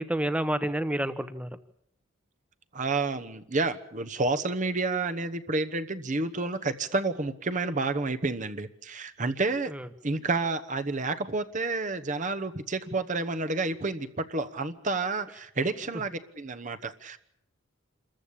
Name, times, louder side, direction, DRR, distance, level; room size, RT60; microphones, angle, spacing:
voice 1, 0.0-1.6 9.7-9.9, right 1 dB, 5° right, 12 dB, 1.0 m, -29 dB
voice 2, 2.7-9.7 10.0-17.2, right 3 dB, 35° right, 9 dB, 1.0 m, -30 dB
27.0 x 14.0 x 8.6 m, 0.74 s
head